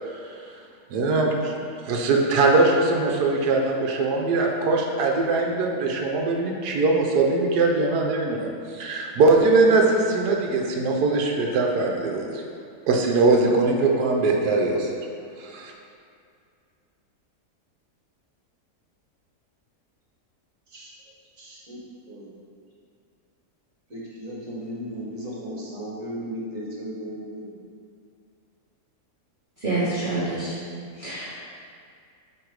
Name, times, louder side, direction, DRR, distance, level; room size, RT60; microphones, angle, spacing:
voice 1, 0.9-1.5 1.8-8.5 8.7-12.3 12.9-14.9 15.4-15.7, right 3 dB, 80° right, 0 dB, 1.3 m, -21 dB
voice 2, 21.4-21.8 22.1-22.3 23.9-27.5, equal, 55° right, -5 dB, 1.7 m, -35 dB
voice 3, 29.6-30.5 31.0-31.3, right 2 dB, 35° right, -12 dB, 1.3 m, -27 dB
8.7 x 3.2 x 4.7 m, 2.3 s
omnidirectional pair, 1.7 m